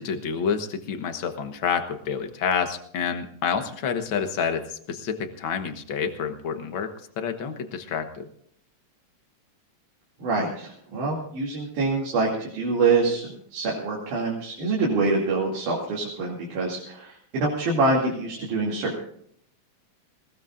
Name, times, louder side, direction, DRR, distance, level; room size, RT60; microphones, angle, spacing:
voice 1, 0.0-8.3, left 6 dB, 50° left, 7 dB, 1.6 m, -28 dB
voice 2, 10.2-19.0, right 3 dB, 80° right, -3 dB, 4.2 m, -25 dB
20.5 x 19.5 x 2.6 m, 0.64 s
omnidirectional pair, 3.5 m